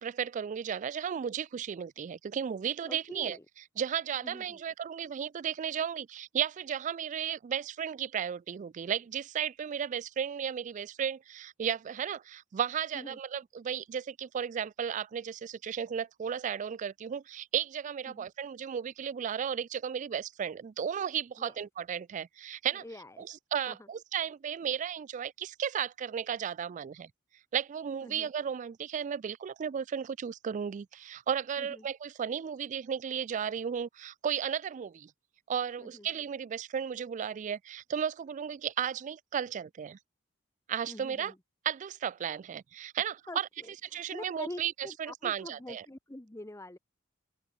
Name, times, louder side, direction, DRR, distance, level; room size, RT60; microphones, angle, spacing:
voice 1, 0.0-3.4 3.8-22.8 23.2-27.1 27.5-35.1 35.5-40.0 40.7-41.3 41.6-43.5 43.9-44.7 45.0-45.8, right 8 dB, 40° right, 0.3 m, -34 dB
voice 2, 2.9-3.4 4.2-4.6 12.9-13.2 18.1-18.3 21.4-21.6 22.7-23.3 23.7-23.9 28.0-28.3 31.6-31.9 35.8-36.1 40.9-41.4 43.3-46.8, left 1 dB, 15° left, 0.9 m, -46 dB
open air
head